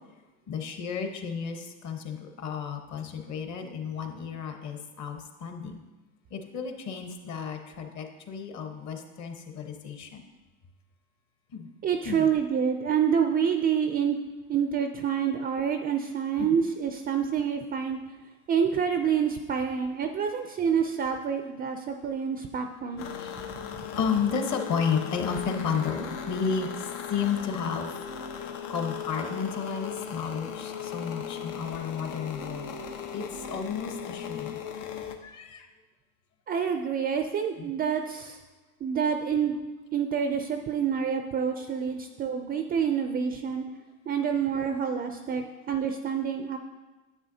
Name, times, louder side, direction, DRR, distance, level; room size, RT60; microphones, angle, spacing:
voice 1, 0.5-5.8 6.3-10.2 11.5-11.7 12.0-12.2 16.4-16.5 23.2-23.4 24.0-26.7 27.1-27.9 28.4-32.7 33.1-34.6 35.2-35.7 37.6-37.7, left 6 dB, 45° left, 5 dB, 1.1 m, -32 dB
voice 2, 11.8-14.2 14.5-18.0 18.5-23.1 23.8-23.9 36.5-38.4 38.8-39.6 39.9-43.7 44.1-46.6, right 7 dB, 25° right, 6 dB, 0.4 m, -27 dB
sound 1, 23.0-35.2, left 8 dB, 80° left, 0.9 m, -37 dB
9.7 x 8.0 x 2.7 m, 1.2 s
supercardioid pair, 110°, 40 cm